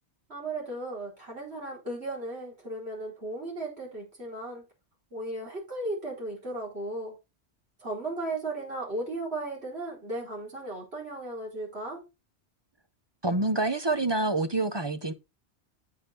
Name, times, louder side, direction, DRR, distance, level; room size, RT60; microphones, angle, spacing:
voice 1, 0.3-4.6 5.1-7.1 7.8-12.0, right 2 dB, 65° right, 4.6 m, -36 dB
voice 2, 13.2-15.1, right 2 dB, 30° right, 0.6 m, -27 dB
8.4 x 5.7 x 4.3 m
omnidirectional pair, 1.1 m